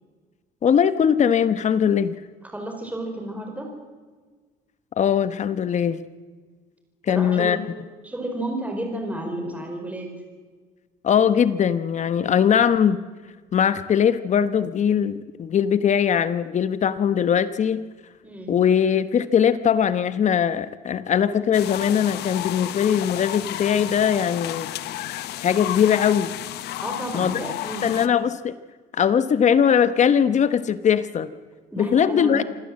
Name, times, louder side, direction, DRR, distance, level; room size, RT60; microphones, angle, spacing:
voice 1, 0.6-2.1 5.0-6.0 7.1-7.6 11.0-13.0 13.5-17.8 18.5-24.7 25.4-26.3 27.1-27.4 27.8-28.6 28.9-31.3 31.8-32.4, left 8 dB, 45° left, 13 dB, 1.1 m, -20 dB
voice 2, 2.5-3.7 7.1-7.6 8.0-10.1 18.2-18.5 26.8-27.9 31.7-32.4, right 1 dB, 10° right, 2 dB, 4.7 m, -31 dB
sound 1, 21.5-28.1, left 14 dB, 80° left, 1.1 m, -32 dB
27.0 x 16.0 x 7.6 m, 1.4 s
cardioid pair, 110°, 17 cm